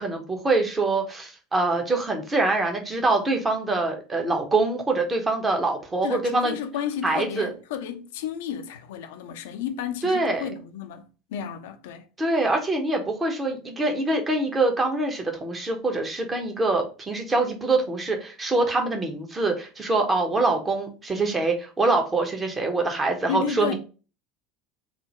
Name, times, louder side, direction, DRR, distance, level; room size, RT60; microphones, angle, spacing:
voice 1, 0.0-6.5 7.0-7.5 10.0-10.5 12.2-23.7, right 2 dB, 20° right, 0.9 m, -24 dB
voice 2, 6.0-12.1 23.3-23.7, left 8 dB, 65° left, 0.5 m, -32 dB
3.7 x 2.0 x 4.1 m
figure-of-eight pair, 75°, 0 cm